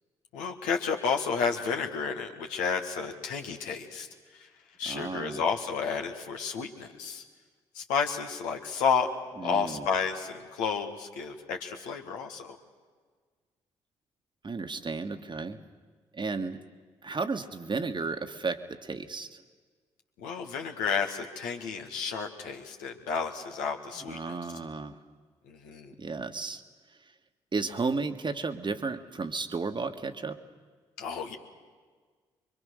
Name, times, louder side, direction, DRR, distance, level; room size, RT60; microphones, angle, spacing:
voice 1, 0.3-4.1 4.3-4.5 4.8-7.2 7.7-9.1 9.4-12.6 20.2-24.3 25.5-25.9 31.0-31.4, left 6 dB, 75° left, 3 dB, 1.9 m, -31 dB
voice 2, 4.8-5.4 9.4-9.9 14.4-15.6 16.1-16.6 17.0-19.4 24.1-25.0 26.0-26.6 27.5-30.4, right 4 dB, 35° right, 7 dB, 1.6 m, -33 dB
25.5 x 23.5 x 6.5 m, 1.5 s
hypercardioid pair, 40°, 14 cm